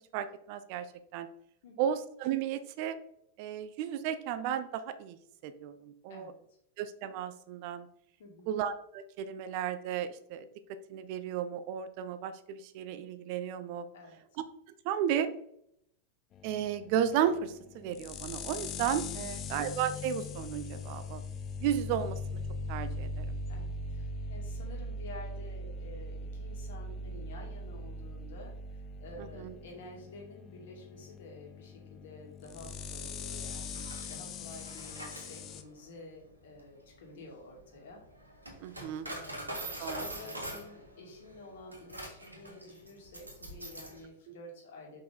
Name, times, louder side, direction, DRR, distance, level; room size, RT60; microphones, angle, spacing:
voice 1, 0.1-0.9 1.1-1.3 1.8-3.0 3.4-5.2 5.4-6.3 6.8-7.9 8.5-10.5 10.9-13.8 14.8-15.3 16.4-21.2 21.6-22.4 22.7-23.4 29.2-29.5 38.6-39.1 39.8-40.1 44.3-44.4, right 9 dB, 45° right, 12 dB, 0.6 m, -34 dB
voice 2, 1.6-2.0 6.1-6.3 8.2-8.5 13.9-14.2 23.5-38.0 39.0-45.0, left 2 dB, 55° left, 0 dB, 2.5 m, -50 dB
sound 1, 16.3-35.6, left 2 dB, 30° left, 0.7 m, -41 dB
Coin (dropping), 33.5-44.0, right 1 dB, 80° right, 2.0 m, -44 dB
6.8 x 5.3 x 3.8 m, 0.72 s
figure-of-eight pair, 90°, 0 cm